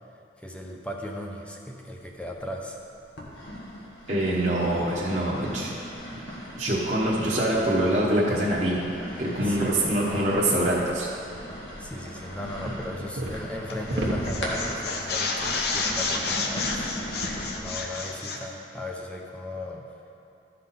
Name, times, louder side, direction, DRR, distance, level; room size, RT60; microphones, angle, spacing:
voice 1, 0.4-2.8 9.4-10.0 11.8-17.3 17.5-19.8, left 1 dB, 5° left, 0 dB, 0.6 m, -37 dB
sound 1, 1.9-2.6 3.2-17.8, equal, 80° left, 1.5 m, -38 dB
voice 2, 4.1-5.8 6.1-6.2 6.6-8.9 9.2-11.1, right 1 dB, 40° right, -7 dB, 1.0 m, -24 dB
sound 2, 9.4-10.2 12.4-13.4 13.9-14.9, right 1 dB, 80° right, 1.1 m, -32 dB
sound 3, 13.7-14.0 14.2-18.5, left 4 dB, 60° left, 0.7 m, -30 dB
12.5 x 5.6 x 4.1 m, 2.6 s
head